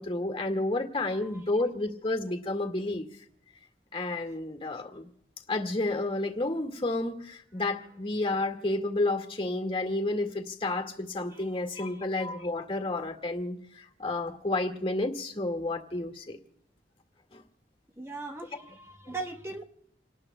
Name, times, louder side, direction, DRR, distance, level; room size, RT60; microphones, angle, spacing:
voice 1, 0.0-3.1 3.9-5.1 5.5-16.4 17.3-17.4 19.1-19.2, left 2 dB, 30° left, 5 dB, 1.8 m, -31 dB
voice 2, 1.0-1.4 11.3-11.4 11.8-12.0 18.0-19.6, right 3 dB, 15° right, 3 dB, 1.0 m, -40 dB
28.5 x 19.0 x 2.2 m, 0.75 s
head